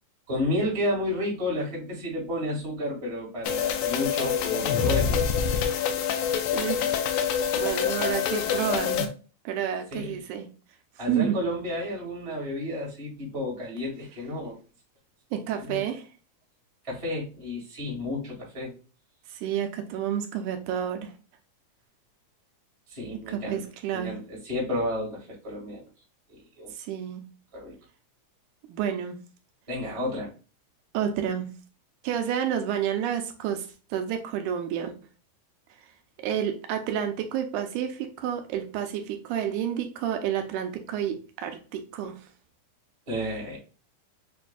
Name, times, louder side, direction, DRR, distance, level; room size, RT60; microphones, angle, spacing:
voice 1, 0.3-5.6 9.9-10.2 11.0-14.6 15.5-15.8 16.8-18.7 22.9-23.6 23.9-25.8 26.3-26.7 27.5-27.7 29.7-30.3 43.1-43.6, left 1 dB, 15° right, 1.1 m, -31 dB
sound 1, 3.4-9.1, left 7 dB, 90° left, 1.5 m, -26 dB
voice 2, 6.5-7.0 7.6-9.1 9.5-10.5 11.1-11.4 15.3-16.1 19.3-21.1 23.3-24.1 26.8-27.2 28.6-29.2 30.9-31.5 32.0-34.9 36.2-42.2, right 9 dB, 85° right, 2.0 m, -30 dB
6.5 x 2.5 x 2.3 m
omnidirectional pair, 3.6 m